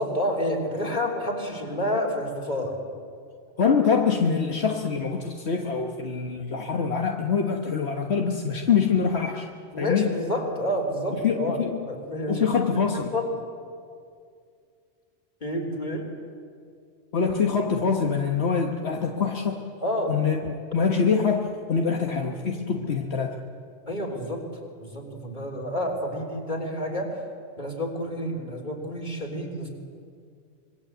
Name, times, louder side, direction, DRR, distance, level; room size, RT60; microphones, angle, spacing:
voice 1, 0.0-2.8 9.7-12.6 12.9-13.3 15.4-16.1 19.8-20.2 22.7-22.8 23.9-24.5 24.8-27.2 27.6-29.7, left 1 dB, 45° left, 0 dB, 4.0 m, -29 dB
voice 2, 3.6-9.5 9.8-10.1 11.2-11.8 12.3-13.1 17.1-19.6 20.1-23.3, left 6 dB, 75° left, 2 dB, 1.7 m, -24 dB
26.0 x 22.0 x 8.2 m, 2.3 s
omnidirectional pair, 1.1 m